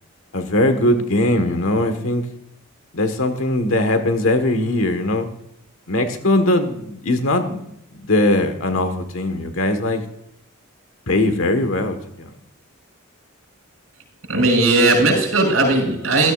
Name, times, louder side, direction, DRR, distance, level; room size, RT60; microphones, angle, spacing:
voice 1, 0.3-2.2 2.9-5.3 5.9-7.6 7.9-10.0 11.1-12.3, left 1 dB, 80° left, 8 dB, 1.5 m, -20 dB
voice 2, 14.3-16.3, right 2 dB, 85° right, 0 dB, 5.5 m, -17 dB
15.5 x 13.0 x 2.5 m, 0.79 s
head